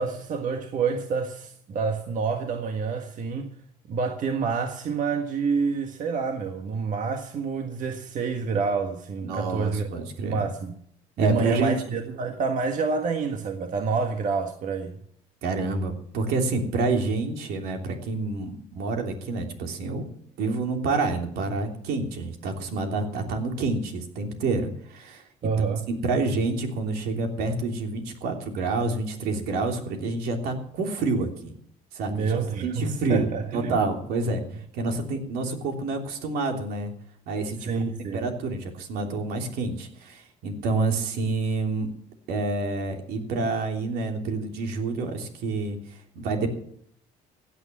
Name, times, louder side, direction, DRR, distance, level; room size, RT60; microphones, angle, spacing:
voice 1, 0.0-3.5 3.9-9.9 10.2-10.7 11.2-15.0 25.4-25.8 32.1-33.8 37.6-38.3, right 5 dB, 55° right, 1.6 m, -28 dB
voice 2, 9.2-10.5 11.2-11.7 15.4-20.1 20.4-25.6 26.0-31.5 31.9-32.4 32.6-34.4 34.7-36.9 37.3-41.9 42.3-45.8 46.1-46.5, right 3 dB, 75° right, 3.2 m, -28 dB
16.0 x 8.8 x 7.5 m
cardioid pair, 100°, 16 cm